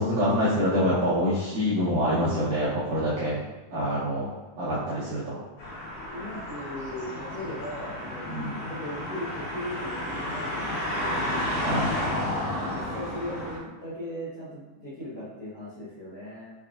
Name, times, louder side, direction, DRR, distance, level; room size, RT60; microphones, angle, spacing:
voice 1, 0.0-3.4 3.7-5.4 8.3-8.5 11.6-11.9, equal, 75° right, -11 dB, 1.8 m, -26 dB
sound 1, 5.6-13.6, left 1 dB, 60° left, 2.0 m, -32 dB
voice 2, 6.1-8.3 8.6-11.3 12.4-16.5, left 1 dB, 75° left, -12 dB, 1.4 m, -38 dB
6.1 x 2.3 x 2.5 m, 1.1 s
omnidirectional pair, 4.4 m